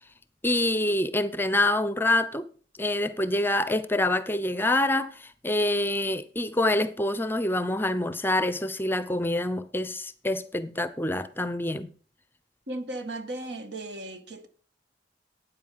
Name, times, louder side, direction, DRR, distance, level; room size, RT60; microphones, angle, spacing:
voice 1, 0.4-2.4 2.8-11.9, left 1 dB, 10° left, 0.6 m, -26 dB
voice 2, 12.7-14.5, right 1 dB, 70° right, 1.7 m, -36 dB
13.0 x 9.1 x 5.6 m
head